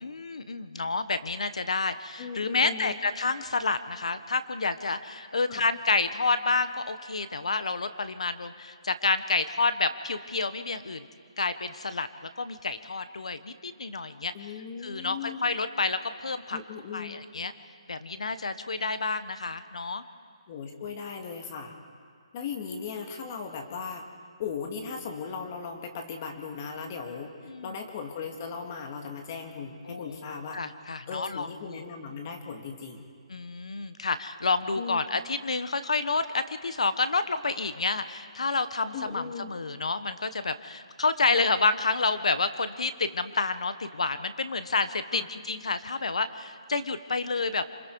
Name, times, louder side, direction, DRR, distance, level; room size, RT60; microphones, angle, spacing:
voice 1, 0.0-11.1 11.4-12.1 12.4-14.3 14.8-16.6 16.9-17.5 17.9-20.0 27.5-27.8 29.9-31.8 33.3-47.6, left 3 dB, 90° left, 12 dB, 1.2 m, -29 dB
voice 2, 2.2-3.0 5.5-5.6 14.3-15.5 16.5-17.2 20.5-21.8 22.3-24.1 24.4-30.6 31.1-33.1 34.8-35.0 38.9-39.5 45.1-45.3, left 6 dB, 30° left, 4 dB, 2.0 m, -38 dB
27.0 x 24.5 x 4.7 m, 2.1 s
hypercardioid pair, 165°, 3 cm